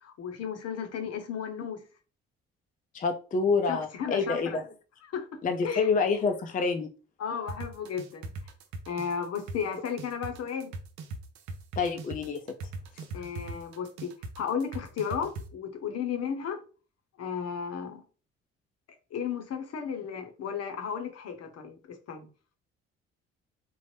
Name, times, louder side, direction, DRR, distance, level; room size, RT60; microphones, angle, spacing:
voice 1, 0.0-1.8 3.7-4.6 5.1-5.3 5.6-5.9 7.2-8.3 8.9-10.7 13.1-16.6 17.2-18.0 19.1-22.3, left 7 dB, 60° left, 0.8 m, -34 dB
voice 2, 2.9-4.6 5.4-6.9 11.8-12.4, left 4 dB, 30° left, 0.4 m, -27 dB
sound 1, 7.5-15.4, right 3 dB, 75° right, 0.5 m, -39 dB
3.0 x 2.0 x 3.2 m
hypercardioid pair, 50°, 29 cm